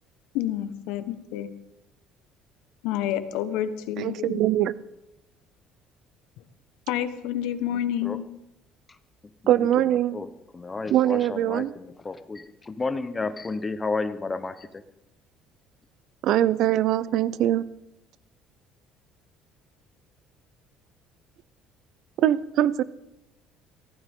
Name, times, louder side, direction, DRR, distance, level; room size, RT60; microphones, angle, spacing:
voice 1, 0.3-1.5 2.8-4.4 6.9-8.2, left 11 dB, 90° left, 11 dB, 1.3 m, -29 dB
voice 2, 4.0-4.8 9.5-10.2 10.9-11.7 16.2-17.6 22.2-22.8, right 12 dB, 55° right, 18 dB, 0.6 m, -22 dB
voice 3, 7.7-8.2 9.4-14.7, left 3 dB, 15° left, 10 dB, 0.9 m, -32 dB
24.0 x 15.5 x 3.7 m, 0.86 s
cardioid pair, 155°, 0 cm